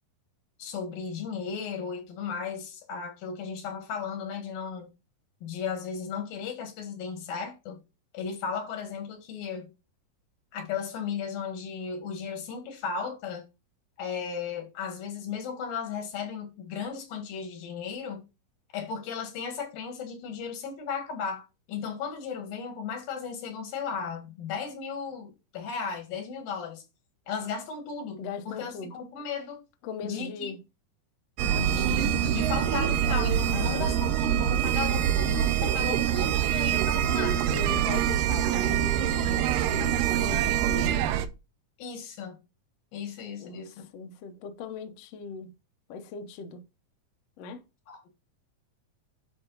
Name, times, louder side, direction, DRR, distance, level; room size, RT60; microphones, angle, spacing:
voice 1, 0.6-4.9 5.4-7.8 8.1-9.7 10.5-13.4 14.0-18.3 18.7-26.8 27.3-29.6 30.0-30.5 31.4-37.4 41.8-42.4 42.9-43.9 47.9-48.1, left 6 dB, 85° left, 3.6 m, -35 dB
voice 2, 28.2-28.9 29.8-30.6 33.5-34.0 37.2-41.1 43.4-43.7 43.9-45.5 45.9-46.6 47.4-47.6, left 5 dB, 70° left, 1.6 m, -39 dB
sound 1, 31.4-41.3, right 10 dB, 85° right, 2.3 m, -25 dB
10.0 x 4.1 x 3.9 m
omnidirectional pair, 4.0 m